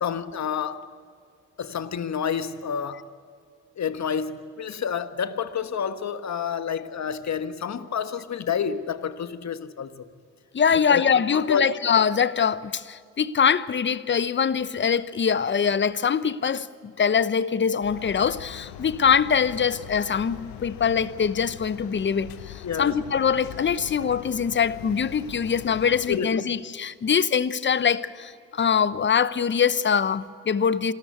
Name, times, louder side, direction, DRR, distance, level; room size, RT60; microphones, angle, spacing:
voice 1, 0.0-0.9 1.6-3.1 3.8-10.1 10.9-11.0 11.3-11.7 22.6-23.0 26.1-26.4, left 7 dB, 45° left, 1.5 m, -29 dB
voice 2, 10.5-30.9, left 7 dB, 30° left, 0.9 m, -23 dB
sound 1, 17.8-26.2, left 11 dB, 70° left, 1.1 m, -42 dB
26.0 x 13.5 x 8.2 m
hypercardioid pair, 55°, 37 cm